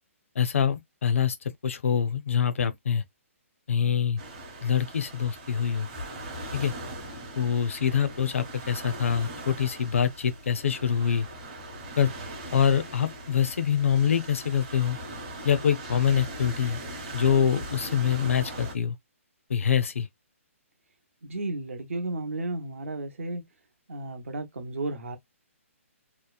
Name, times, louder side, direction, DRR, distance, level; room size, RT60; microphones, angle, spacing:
voice 1, 0.4-1.4 1.6-3.0 3.7-4.2 4.6-5.9 6.5-6.7 7.4-11.3 12.0-12.1 12.5-15.0 15.4-16.8 17.1-19.0 19.5-20.1, left 8 dB, 65° left, 0.5 m, -25 dB
sound 1, 4.2-18.7, right 1 dB, 25° right, 0.8 m, -40 dB
voice 2, 21.2-23.4 23.9-25.2, right 2 dB, 65° right, 0.8 m, -33 dB
2.8 x 2.0 x 2.3 m
hypercardioid pair, 175°, 8 cm